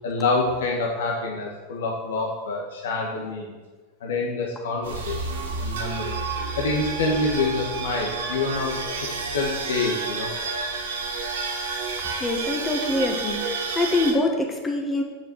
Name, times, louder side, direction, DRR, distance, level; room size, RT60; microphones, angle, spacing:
voice 1, 0.0-3.6 4.0-6.2 6.6-8.8 9.3-10.3, left 3 dB, 85° left, -1 dB, 1.7 m, -26 dB
sound 1, 4.8-14.1, right 4 dB, 90° right, 2.2 m, -30 dB
voice 2, 12.2-15.0, left 2 dB, 20° left, 2 dB, 1.5 m, -24 dB
7.4 x 6.7 x 7.4 m, 1.3 s
hypercardioid pair, 110°, 0 cm